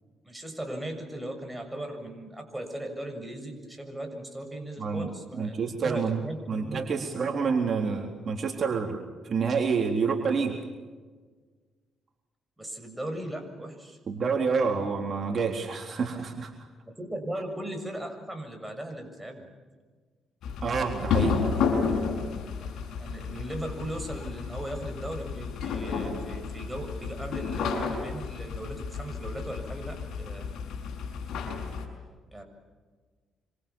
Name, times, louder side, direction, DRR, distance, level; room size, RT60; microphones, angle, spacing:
voice 1, 0.2-5.5 5.8-6.8 12.6-14.0 16.9-19.5 23.0-30.5 32.3-32.4, right 1 dB, 5° right, 3 dB, 7.1 m, -38 dB
voice 2, 4.8-6.2 6.5-10.6 14.1-16.5 20.6-21.4, right 5 dB, 50° right, 2 dB, 3.8 m, -28 dB
sound 1, 20.4-31.8, left 5 dB, 75° left, 6.1 m, -32 dB
28.0 x 26.0 x 7.2 m, 1.4 s
cardioid pair, 90°, 0 cm